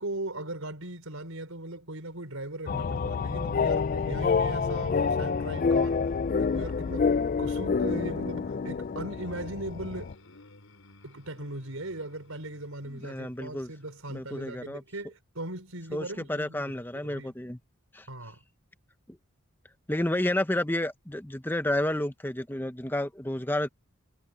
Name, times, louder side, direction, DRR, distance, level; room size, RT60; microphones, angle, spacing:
voice 1, 0.0-6.1 6.4-10.1 11.0-17.3 18.1-18.4, right 1 dB, 85° right, 4.9 m, -39 dB
sound 1, 2.7-10.1, left 5 dB, 40° left, 0.3 m, -28 dB
sound 2, 2.8-14.0, left 2 dB, 80° left, 4.1 m, -55 dB
voice 2, 12.9-13.7 14.1-14.8 15.9-17.6 17.9-18.1 19.1-19.2 19.9-23.7, left 1 dB, 10° left, 0.8 m, -30 dB
head